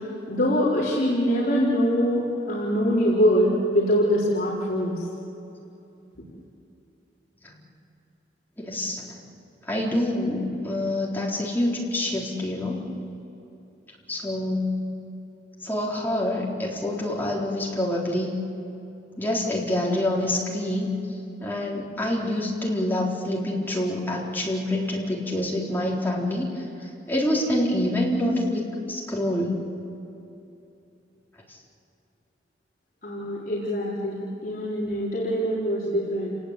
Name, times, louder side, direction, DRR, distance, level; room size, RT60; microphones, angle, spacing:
voice 1, 0.3-5.0 33.0-36.3, equal, 50° left, -7 dB, 4.4 m, -23 dB
voice 2, 8.6-9.0 9.6-12.9 14.1-14.8 15.6-18.3 19.2-20.9 21.4-29.6 31.5-31.6, left 1 dB, 10° left, -4 dB, 4.1 m, -26 dB
30.0 x 19.0 x 8.4 m, 2.8 s
head